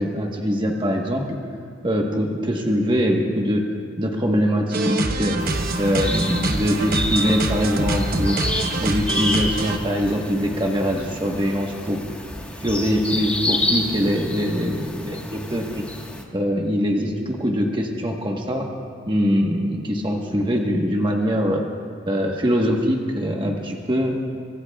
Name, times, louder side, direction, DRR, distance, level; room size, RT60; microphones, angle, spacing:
voice 1, 0.0-1.4 1.8-3.6 4.0-5.3 5.8-8.4 8.8-12.0 12.6-15.8 16.3-18.7 19.1-21.6 22.1-24.1, equal, 25° right, 1 dB, 1.3 m, -23 dB
sound 1, 4.7-9.8, right 2 dB, 50° right, 1.0 m, -25 dB
sound 2, 5.4-16.2, left 1 dB, 5° left, 1.4 m, -29 dB
24.5 x 23.5 x 2.4 m, 2.5 s
head